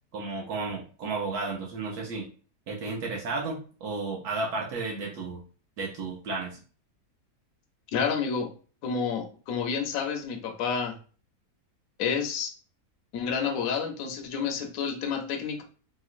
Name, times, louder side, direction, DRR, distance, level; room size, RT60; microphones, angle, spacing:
voice 1, 0.1-2.3 2.7-5.4 5.8-6.6, right 3 dB, 80° right, -2 dB, 1.2 m, -33 dB
voice 2, 7.9-8.5 8.8-10.9 12.0-12.5 13.1-15.6, left 6 dB, 70° left, 4 dB, 1.0 m, -29 dB
2.9 x 2.9 x 2.4 m, 0.39 s
omnidirectional pair, 1.6 m